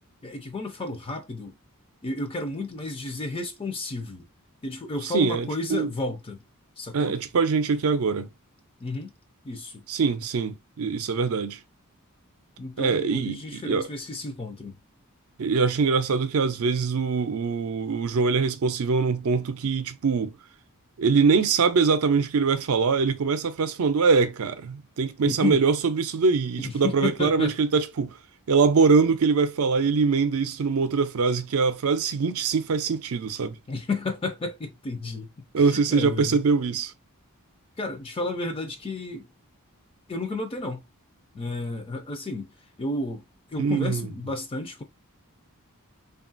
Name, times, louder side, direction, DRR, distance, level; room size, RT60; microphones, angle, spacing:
voice 1, 0.2-1.5 2.0-4.2 4.6-6.4 6.8-7.2 8.8-9.1 9.4-9.8 12.6-14.8 25.3-25.6 26.6-27.5 33.7-35.3 35.6-36.4 37.8-39.3 40.1-40.8 41.3-42.5 42.8-44.8, left 2 dB, 25° left, 0.4 m, -32 dB
voice 2, 5.0-5.9 6.9-8.3 9.9-11.6 12.8-13.9 15.4-20.3 21.0-28.2 28.5-33.6 35.5-36.9 43.6-44.1, right 5 dB, 70° right, 0.5 m, -23 dB
3.1 x 2.3 x 2.4 m
head